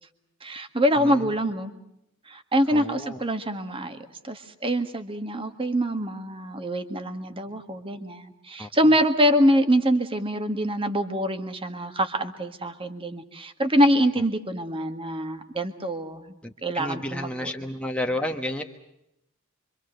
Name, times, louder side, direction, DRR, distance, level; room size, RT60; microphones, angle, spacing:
voice 1, 0.4-1.7 2.3-16.4 16.6-17.5, equal, 25° right, 7 dB, 1.8 m, -25 dB
voice 2, 1.0-1.3 2.7-3.2 8.6-8.7 16.4-18.6, left 1 dB, 5° left, 3 dB, 1.3 m, -31 dB
26.5 x 25.5 x 6.6 m, 0.83 s
head